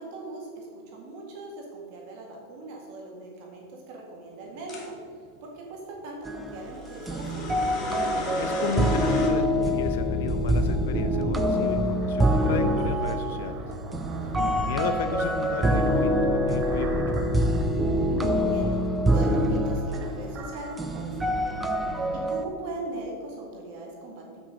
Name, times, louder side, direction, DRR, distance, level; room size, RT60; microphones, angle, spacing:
voice 1, 0.0-4.9 5.4-7.6 14.2-14.4 18.3-18.8 19.1-21.7 22.1-24.4, right 2 dB, 50° right, -1 dB, 1.8 m, -39 dB
sound 1, 4.7-4.9 6.7-9.3, left 2 dB, 25° left, 1.7 m, -35 dB
sound 2, 6.2-22.4, equal, 10° right, 0.5 m, -25 dB
voice 2, 8.4-13.6 14.4-17.2, left 6 dB, 70° left, 7 dB, 0.5 m, -33 dB
sound 3, 11.8-18.3 18.7-19.5 19.8-21.6, right 2 dB, 30° right, 1.0 m, -40 dB
8.0 x 6.1 x 5.1 m, 2.2 s
supercardioid pair, 155°, 0 cm